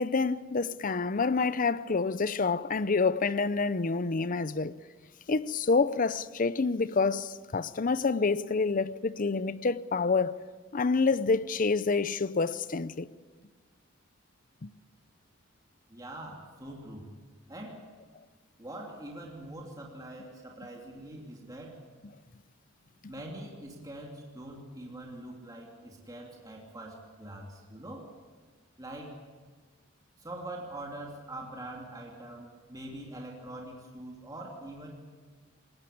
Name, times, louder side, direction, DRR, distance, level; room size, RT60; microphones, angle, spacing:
voice 1, 0.0-4.7 5.3-10.4 10.7-13.1 14.6-14.7, left 4 dB, 40° left, 0.6 m, -27 dB
voice 2, 15.9-17.1 17.5-17.9 18.6-21.8 23.1-28.1 28.8-29.2 30.2-35.0, right 1 dB, 20° right, 2.8 m, -43 dB
21.0 x 19.0 x 8.5 m
head